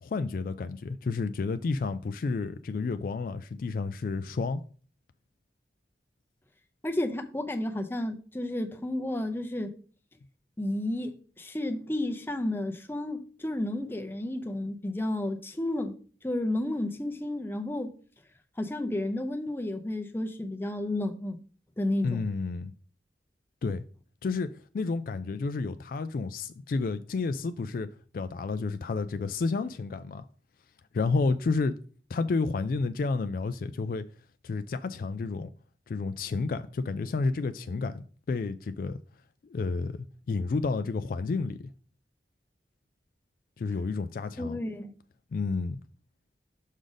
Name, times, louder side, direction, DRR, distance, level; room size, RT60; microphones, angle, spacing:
voice 1, 0.0-4.6 22.0-22.7 23.6-23.8 24.2-24.5 24.7-27.9 28.1-30.3 30.9-31.8 32.1-34.0 34.4-35.5 35.9-39.0 39.4-41.7 43.6-44.6 45.3-45.8, left 4 dB, 50° left, 0.3 m, -30 dB
voice 2, 6.8-9.7 10.6-16.0 16.2-17.9 18.6-21.4 21.8-22.3 44.4-44.9, left 1 dB, 10° left, 0.6 m, -32 dB
6.3 x 5.0 x 3.9 m
head